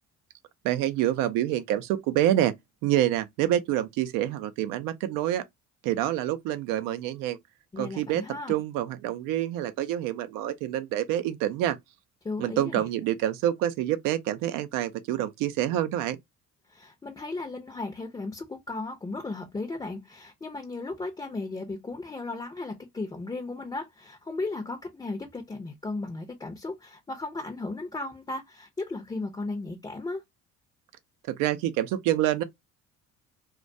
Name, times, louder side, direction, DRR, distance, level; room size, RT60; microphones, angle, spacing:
voice 1, 0.6-2.5 2.8-5.4 5.8-7.4 7.8-11.8 12.4-16.2 31.3-32.4, right 12 dB, 85° right, 0.5 m, -27 dB
voice 2, 7.7-8.6 12.2-12.9 16.7-30.2, left 3 dB, 15° left, 0.5 m, -35 dB
2.2 x 2.2 x 2.5 m
supercardioid pair, 85°, 32 cm